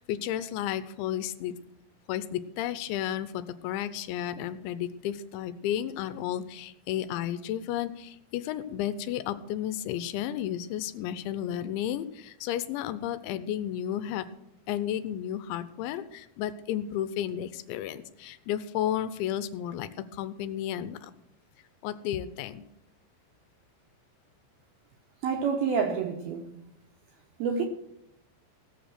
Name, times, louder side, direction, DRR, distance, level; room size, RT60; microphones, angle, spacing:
voice 1, 0.0-1.5 2.1-14.3 14.7-21.1 21.8-22.6, left 11 dB, 85° left, 2.9 m, -32 dB
voice 2, 25.2-26.5 27.4-27.6, right 6 dB, 75° right, 2.2 m, -28 dB
17.0 x 7.2 x 6.4 m
omnidirectional pair, 5.5 m